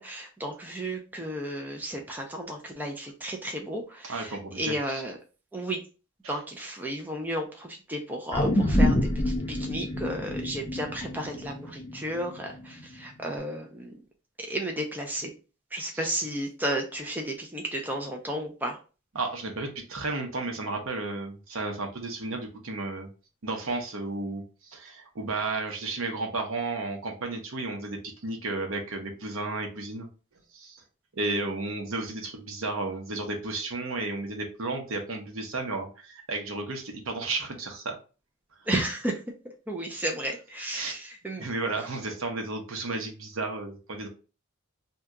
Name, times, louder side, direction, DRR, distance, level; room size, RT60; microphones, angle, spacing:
voice 1, 0.0-5.1 5.5-5.8 6.3-9.0 9.3-13.9 14.4-15.3 15.7-18.8 38.7-39.2 39.7-41.5, right 1 dB, 10° right, 1 dB, 0.4 m, -33 dB
voice 2, 4.0-5.0 6.2-6.4 15.9-16.1 19.1-23.1 23.4-30.1 30.5-30.8 31.1-38.0 40.7-40.9 41.4-44.1, right 3 dB, 70° right, 3 dB, 0.7 m, -33 dB
sound 1, 8.3-12.8 13.2-13.3, left 1 dB, 25° left, 0.7 m, -27 dB
2.8 x 2.2 x 3.5 m, 0.34 s
head